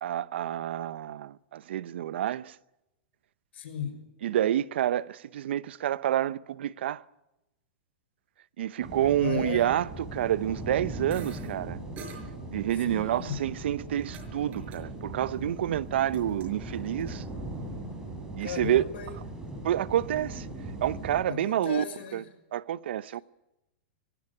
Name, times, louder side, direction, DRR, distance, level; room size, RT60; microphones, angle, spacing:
voice 1, 0.0-2.6 4.2-7.0 8.6-11.8 12.5-17.2 18.4-18.8 19.6-20.5 20.8-21.8 22.1-22.2 22.5-23.2, right 11 dB, 70° right, 0.8 m, -28 dB
voice 2, 3.5-4.0 9.0-9.7 12.8-13.4 18.4-19.2 21.3-22.2, left 7 dB, 75° left, 5.6 m, -36 dB
sound 1, 8.8-21.2, right 2 dB, 10° right, 4.6 m, -39 dB
sound 2, 11.1-11.5 12.0-12.2 13.2-14.3 14.5-14.8 15.1-15.5 15.8-17.1, right 4 dB, 25° right, 5.5 m, -47 dB
21.5 x 17.0 x 9.8 m
supercardioid pair, 155°, 6 cm